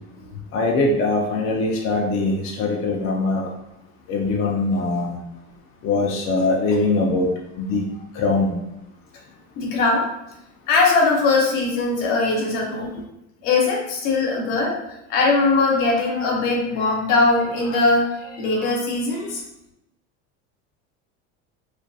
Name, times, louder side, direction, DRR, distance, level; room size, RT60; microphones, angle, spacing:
voice 1, 0.5-2.3 2.6-3.5 4.1-5.2 5.8-7.3 7.6-7.8 8.2-8.5, left 3 dB, 40° left, -1 dB, 0.4 m, -21 dB
voice 2, 9.6-10.0 10.7-12.9 13.4-14.8 15.1-19.4, left 3 dB, 65° left, -1 dB, 0.8 m, -20 dB
2.5 x 2.2 x 2.6 m, 0.86 s
supercardioid pair, 105°, 35 cm